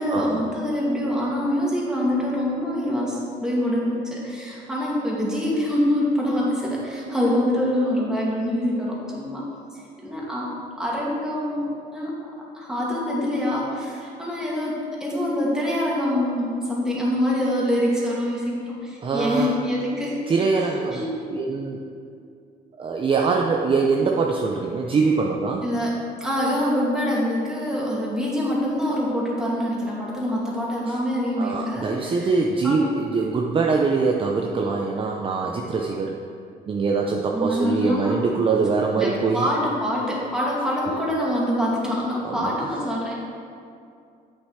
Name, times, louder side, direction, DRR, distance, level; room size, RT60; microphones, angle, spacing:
voice 1, 0.0-9.5 9.7-12.2 12.5-20.3 20.9-21.3 25.6-32.3 32.6-33.0 37.3-38.2 39.0-43.1, left 1 dB, 5° right, -5 dB, 2.4 m, -25 dB
voice 2, 19.0-19.5 20.3-21.0 21.3-21.8 22.8-25.6 30.9-31.0 31.4-36.2 36.7-39.5 40.8-41.0 42.2-42.7, right 4 dB, 30° right, 0 dB, 0.7 m, -23 dB
8.1 x 6.8 x 4.8 m, 2.4 s
cardioid pair, 110°, 17 cm